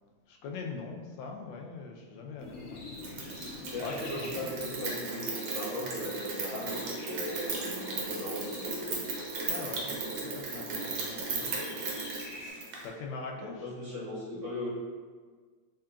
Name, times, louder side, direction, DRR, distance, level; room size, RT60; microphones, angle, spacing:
voice 1, 0.3-4.6 9.4-11.8 12.1-12.4 12.8-13.7, left 4 dB, 85° left, 1 dB, 1.3 m, -43 dB
sound 1, 2.4-12.5, left 2 dB, 65° left, 1.1 m, -47 dB
Rain, 3.0-12.9, right 3 dB, 80° right, 1.5 m, -36 dB
voice 2, 3.5-9.1 13.4-14.7, left 1 dB, 55° right, -8 dB, 0.9 m, -38 dB
3.7 x 3.7 x 2.3 m, 1.5 s
omnidirectional pair, 2.0 m